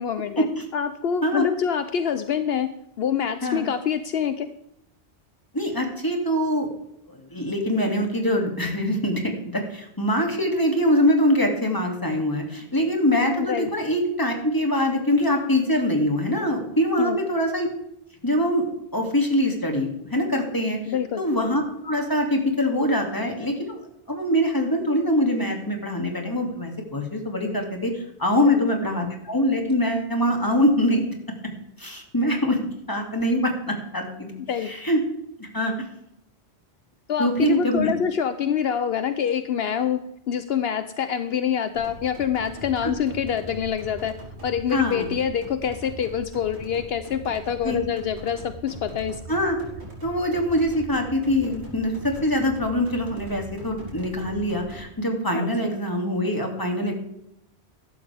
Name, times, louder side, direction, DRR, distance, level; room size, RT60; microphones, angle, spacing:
voice 1, 0.0-0.5 0.7-2.7 3.0-4.5 13.5-13.7 17.0-17.2 20.9-21.2 28.4-28.6 34.5-34.7 37.1-44.1 44.4-49.2 55.3-55.7, left 8 dB, 70° left, 10 dB, 0.9 m, -26 dB
voice 2, 5.5-6.7 7.3-17.7 18.2-18.6 18.9-20.8 21.2-23.8 24.1-31.0 31.8-32.6 32.9-34.3 34.6-35.0 35.4-35.7 37.2-37.9 42.8-42.9 44.7-45.1 47.6-47.8 49.3-49.6 50.0-56.9, left 1 dB, 20° left, 2 dB, 2.5 m, -23 dB
sound 1, 41.7-54.8, right 1 dB, 85° right, 4.4 m, -41 dB
14.5 x 12.0 x 3.5 m, 0.78 s
omnidirectional pair, 1.1 m